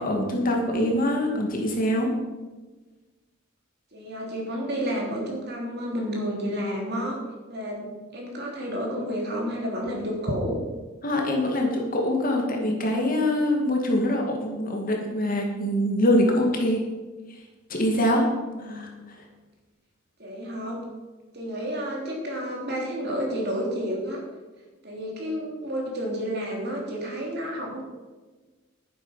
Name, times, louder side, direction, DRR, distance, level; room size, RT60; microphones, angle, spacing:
voice 1, 0.0-2.1 11.0-16.8 17.3-17.4 17.7-18.3 18.6-18.9, left 1 dB, 40° left, 1 dB, 2.1 m, -24 dB
voice 2, 3.9-7.2 7.5-10.6 18.3-19.0 20.2-20.8 21.3-24.2 24.8-27.8, equal, 50° right, -1 dB, 3.3 m, -31 dB
11.5 x 9.4 x 5.6 m, 1.2 s
head